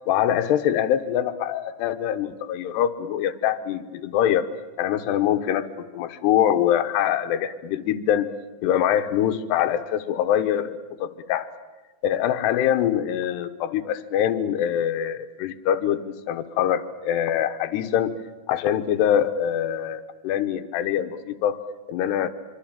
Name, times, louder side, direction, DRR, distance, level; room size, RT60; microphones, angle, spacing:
voice 1, 0.1-4.5 4.8-8.3 8.6-11.5 12.0-18.2 18.5-21.6 21.9-22.3, left 10 dB, 70° left, 8 dB, 3.0 m, -24 dB
25.0 x 25.0 x 8.9 m, 1.2 s
omnidirectional pair, 5.3 m